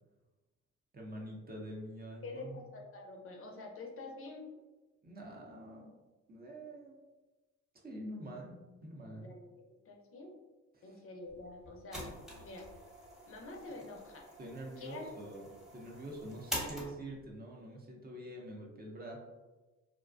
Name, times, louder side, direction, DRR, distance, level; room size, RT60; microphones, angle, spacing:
voice 1, 0.9-2.6 5.0-5.9 6.3-7.0 7.8-9.3 10.7-11.0 14.4-15.5 15.7-19.2, right 1 dB, 30° right, -1 dB, 0.6 m, -46 dB
voice 2, 2.2-4.5 9.2-10.3 10.8-12.1 12.4-12.7 13.3-14.2 14.8-15.3, left 2 dB, 45° left, 1 dB, 0.5 m, -47 dB
sound 1, 11.3-17.3, equal, ahead, 0.8 m, -46 dB
2.4 x 2.1 x 2.4 m, 1.2 s
cardioid pair, 90°, 30 cm